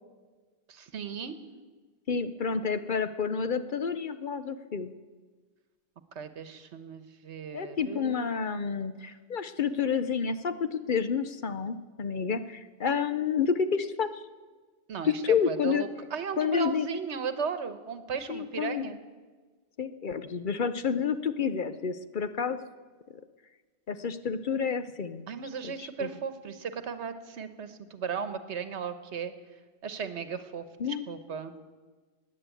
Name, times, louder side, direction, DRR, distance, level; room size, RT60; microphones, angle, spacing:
voice 1, 0.7-1.4 6.1-8.5 14.9-19.0 25.3-29.3 29.8-31.5, right 6 dB, 80° right, 11 dB, 1.3 m, -36 dB
voice 2, 2.1-4.9 7.5-14.2 15.0-15.8 16.4-16.9 18.3-18.9 19.8-22.6 23.9-25.2 25.6-26.1 30.8-31.0, left 6 dB, 50° left, 11 dB, 0.7 m, -29 dB
15.0 x 9.7 x 9.0 m, 1.4 s
omnidirectional pair, 1.2 m